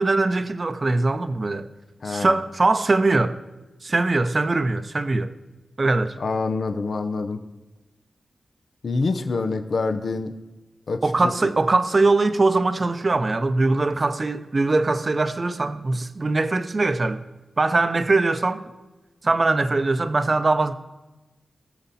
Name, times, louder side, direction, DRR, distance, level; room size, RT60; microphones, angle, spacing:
voice 1, 0.0-1.7 2.0-3.3 3.8-5.3 5.8-6.1 11.0-17.2 17.6-18.6 19.2-20.7, right 3 dB, 45° right, 0.7 m, -21 dB
voice 2, 2.0-2.3 6.2-7.4 8.8-10.3 10.9-11.3, left 3 dB, 70° left, 0.8 m, -26 dB
19.5 x 6.9 x 4.2 m
cardioid pair, 65°, 0 cm